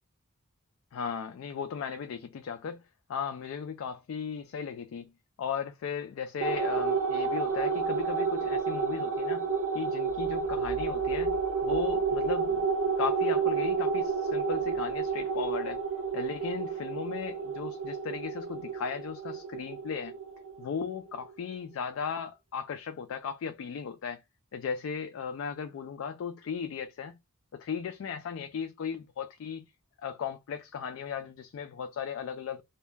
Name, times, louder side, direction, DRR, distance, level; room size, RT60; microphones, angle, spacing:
voice 1, 0.9-2.8 3.1-5.1 5.4-9.5 9.7-11.4 11.6-12.7 13.0-15.8 16.1-20.1 20.6-24.2 24.5-27.2 27.5-29.7 30.0-32.6, left 6 dB, 65° left, 0.3 m, -36 dB
sound 1, 6.4-21.2, right 5 dB, 65° right, 0.7 m, -30 dB
2.2 x 2.0 x 3.2 m
head